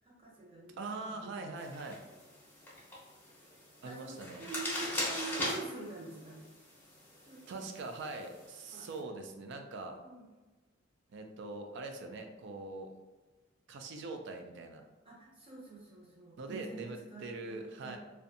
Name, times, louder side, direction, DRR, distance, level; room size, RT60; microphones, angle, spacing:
voice 1, 0.0-1.5 3.8-6.5 7.2-7.6 8.7-8.9 10.0-10.3 13.9-14.1 15.0-18.0, right 3 dB, 25° right, -4 dB, 0.7 m, -46 dB
voice 2, 0.8-2.0 3.8-4.4 7.5-10.0 11.1-12.9 13.7-14.8 16.4-18.0, right 3 dB, 60° right, 5 dB, 0.3 m, -42 dB
sound 1, 1.6-9.0, left 1 dB, 10° left, 0.6 m, -41 dB
2.5 x 2.2 x 2.6 m, 1.2 s
head